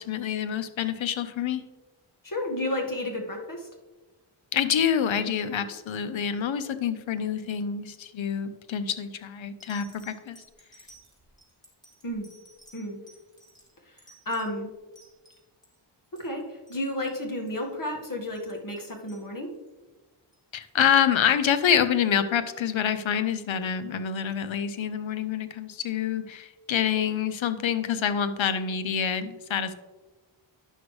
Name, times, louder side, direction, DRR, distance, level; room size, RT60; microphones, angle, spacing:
voice 1, 0.0-1.6 4.5-10.4 20.5-29.7, left 8 dB, 70° left, 12 dB, 0.8 m, -27 dB
voice 2, 2.2-3.7 12.0-12.3 12.7-13.0 13.9-14.0 14.2-14.7 16.1-19.5, left 1 dB, 40° left, 1 dB, 1.7 m, -32 dB
sound 1, 8.8-9.0 9.6-15.8 16.0-16.4 16.7-16.8 17.0-17.2 17.5-17.7 18.1-19.7 20.3-21.0 21.8-21.9, right 1 dB, 10° left, 2.7 m, -56 dB
9.9 x 6.1 x 3.2 m, 1.2 s
cardioid pair, 55°, 49 cm